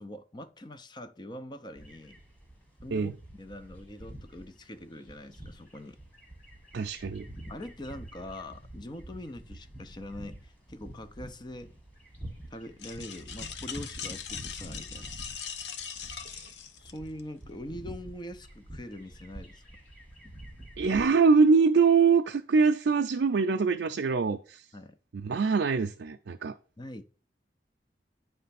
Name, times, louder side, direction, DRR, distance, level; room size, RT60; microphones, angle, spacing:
voice 1, 0.0-2.2 2.8-6.0 7.5-11.7 12.5-15.1 16.8-19.6 24.7-25.0 26.8-27.0, left 1 dB, 25° left, 0.6 m, -43 dB
sound 1, 1.8-21.1, right 1 dB, 5° left, 1.7 m, -47 dB
voice 2, 6.7-7.3 16.3-16.5 20.8-24.7 25.1-26.5, right 5 dB, 85° right, 0.5 m, -24 dB
sound 2, 12.8-17.2, left 7 dB, 85° left, 0.8 m, -40 dB
9.2 x 3.3 x 5.7 m
head